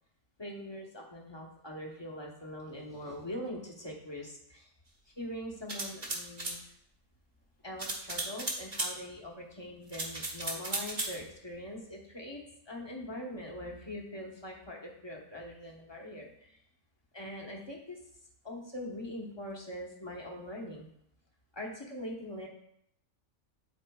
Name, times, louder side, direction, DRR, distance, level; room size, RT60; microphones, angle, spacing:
voice 1, 0.4-4.7 5.1-6.6 7.6-16.6 17.1-18.0 18.4-20.9 21.5-22.5, left 1 dB, 20° left, -1 dB, 0.9 m, -42 dB
sound 1, 5.7-6.6 7.8-8.9 9.9-11.2, right 2 dB, 30° right, 1.1 m, -35 dB
11.5 x 4.3 x 2.3 m, 0.74 s
omnidirectional pair, 1.5 m